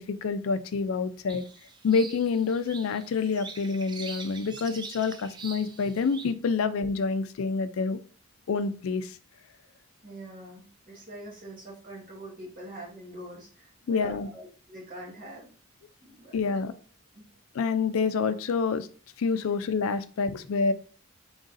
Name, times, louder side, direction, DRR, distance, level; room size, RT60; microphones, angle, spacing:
voice 1, 0.0-1.5 1.8-8.0 8.5-9.2 13.9-14.3 16.3-16.7 17.5-18.9 19.2-20.7, left 5 dB, 80° left, 12 dB, 0.4 m, -27 dB
Birds Singing Forest (Scotland), 1.3-6.3, right 4 dB, 20° right, 0.3 m, -44 dB
voice 2, 10.0-14.4 14.7-15.5 16.0-16.4 17.1-17.3, right 1 dB, 40° right, -5 dB, 1.5 m, -44 dB
3.9 x 3.8 x 2.5 m, 0.40 s
head